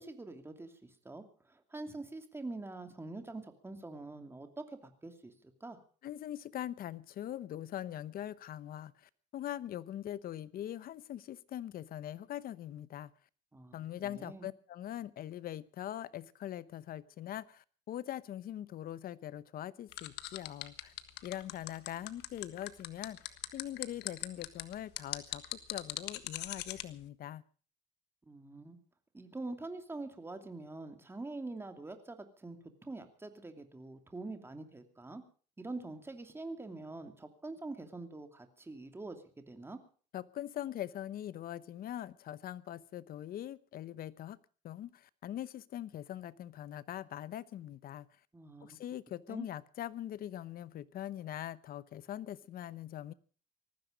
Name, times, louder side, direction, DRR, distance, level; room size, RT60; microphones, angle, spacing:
voice 1, 0.0-5.8 13.5-13.7 14.0-14.5 28.3-28.8 29.1-35.2 35.6-39.8 48.3-48.8 49.3-49.5, right 2 dB, 15° right, 2.7 m, -45 dB
voice 2, 6.0-13.1 13.7-20.9 21.2-25.4 25.7-27.4 40.1-44.4 44.6-48.1 48.6-53.1, left 12 dB, 60° left, 0.9 m, -42 dB
sound 1, 19.9-26.8, left 15 dB, 85° left, 1.5 m, -40 dB
19.0 x 14.5 x 5.1 m
cardioid pair, 110°, 17 cm